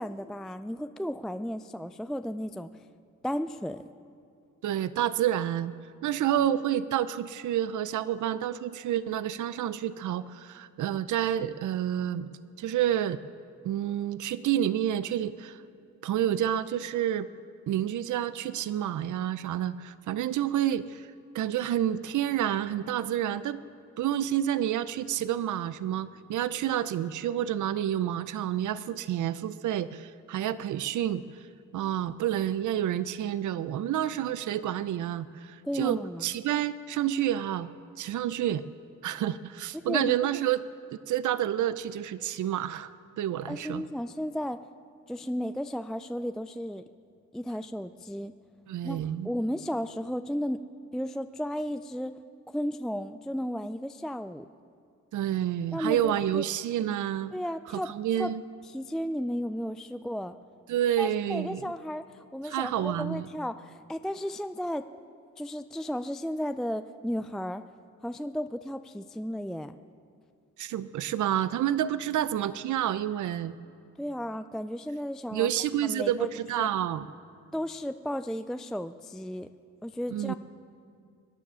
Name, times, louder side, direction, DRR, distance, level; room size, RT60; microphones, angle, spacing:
voice 1, 0.0-2.7 3.2-3.8 35.6-36.3 39.8-40.3 43.5-44.6 45.1-46.8 47.3-48.3 48.8-50.6 50.9-52.1 52.5-54.5 55.7-56.4 57.3-58.3 58.7-60.4 61.0-64.8 65.4-67.6 68.0-69.8 74.0-75.5 75.8-76.3 76.6-76.7 77.5-79.5 79.8-80.3, equal, ahead, 10 dB, 0.3 m, -34 dB
voice 2, 4.6-5.7 6.0-12.3 12.6-13.2 13.6-15.6 16.0-17.3 17.7-23.6 24.0-31.5 31.7-37.7 38.0-38.6 39.0-40.6 41.1-42.9 43.2-43.8 48.7-49.3 55.1-57.3 57.7-58.4 60.7-61.6 62.4-63.3 70.6-73.6 75.3-77.1 80.1-80.3, right 11 dB, 75° right, 15 dB, 0.5 m, -29 dB
23.5 x 9.9 x 6.2 m, 2.4 s
cardioid pair, 105°, 30 cm